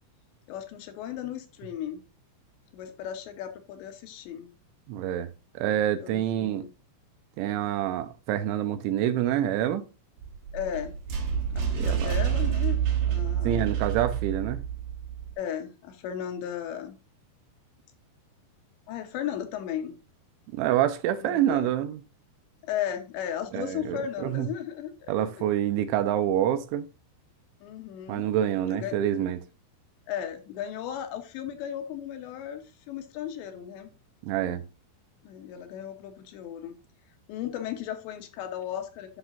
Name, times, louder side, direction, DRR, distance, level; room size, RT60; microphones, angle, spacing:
voice 1, 0.5-2.0 2.7-4.5 6.0-6.7 10.5-10.9 11.5-12.8 13.1-13.7 15.4-17.0 18.9-20.0 21.2-21.7 22.6-25.1 27.6-28.3 28.7-29.0 30.1-33.9 35.2-36.8 37.3-39.2, left 10 dB, 75° left, 3.0 m, -35 dB
voice 2, 4.9-6.7 7.4-9.8 11.8-12.1 13.4-14.6 20.5-22.0 23.5-24.5 25.1-26.9 28.1-29.4 34.2-34.6, right 11 dB, 80° right, 3.0 m, -27 dB
sound 1, 10.2-15.3, right 9 dB, 60° right, 3.9 m, -28 dB
12.0 x 5.9 x 2.5 m
omnidirectional pair, 5.5 m